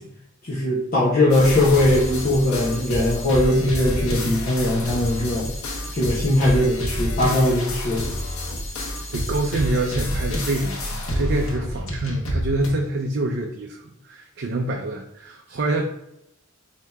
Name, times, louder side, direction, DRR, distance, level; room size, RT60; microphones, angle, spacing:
voice 1, 0.4-5.5 5.9-8.0, left 1 dB, 40° left, -6 dB, 0.8 m, -20 dB
sound 1, 1.3-12.7, equal, 85° left, 1.0 m, -28 dB
voice 2, 9.1-15.9, right 2 dB, 50° right, 1 dB, 0.5 m, -26 dB
3.3 x 2.8 x 4.6 m, 0.82 s
head